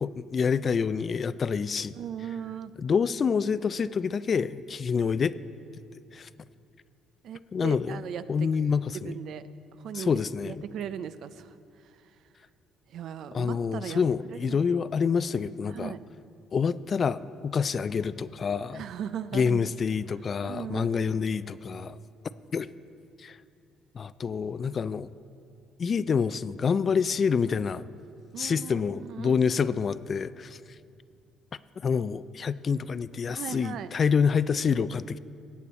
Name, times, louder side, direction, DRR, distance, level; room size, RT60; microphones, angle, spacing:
voice 1, 0.0-1.9 2.8-5.3 6.1-6.3 7.5-8.0 8.3-9.1 9.9-10.6 13.3-15.9 16.5-18.8 19.3-22.0 22.5-22.7 23.2-23.4 23.9-25.1 25.8-27.8 28.4-30.6 31.8-35.2, left 6 dB, 40° left, 16 dB, 0.3 m, -27 dB
voice 2, 2.0-2.7 7.2-8.7 9.0-9.4 9.8-10.1 10.4-11.5 12.9-14.0 14.3-14.6 15.7-16.0 18.7-19.7 20.4-21.2 28.3-29.4 33.3-33.9, right 8 dB, 65° right, 13 dB, 0.5 m, -38 dB
16.5 x 8.5 x 4.2 m, 2.5 s
cardioid pair, 85°, 0 cm